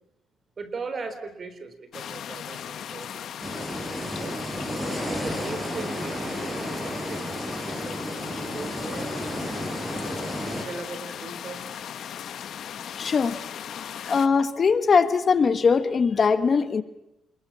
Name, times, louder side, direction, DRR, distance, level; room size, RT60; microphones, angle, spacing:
voice 1, 0.6-3.2 4.0-4.4 5.0-9.6 10.4-11.9, right 4 dB, 45° right, 10 dB, 4.1 m, -39 dB
sound 1, 1.9-14.3, left 9 dB, 65° left, 1.6 m, -38 dB
sound 2, 3.4-10.6, equal, 10° right, 7.6 m, -32 dB
voice 2, 13.0-13.4 14.0-16.8, left 5 dB, 45° left, 12 dB, 1.5 m, -21 dB
28.5 x 21.5 x 8.9 m, 0.84 s
cardioid pair, 90°, 0 cm